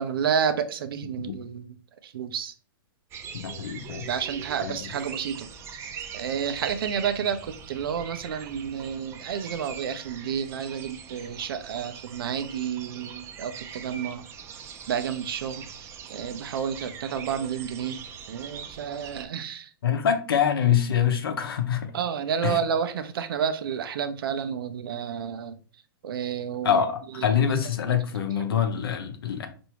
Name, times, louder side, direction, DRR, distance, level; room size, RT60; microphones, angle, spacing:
voice 1, 0.0-1.7 2.1-2.5 4.1-5.5 5.7-5.8 6.1-14.2 14.9-15.6 16.1-18.0 18.3-19.7 21.9-25.5 26.0-26.8 27.2-27.3 27.9-28.0, right 7 dB, 75° right, 0.6 m, -30 dB
sound 1, 3.1-19.3, right 7 dB, 20° right, 0.5 m, -42 dB
voice 2, 3.3-4.0 4.6-4.9 19.8-21.9 22.4-22.6 26.6-29.5, left 8 dB, 80° left, 0.8 m, -25 dB
4.5 x 2.6 x 2.9 m
hypercardioid pair, 140°, 12 cm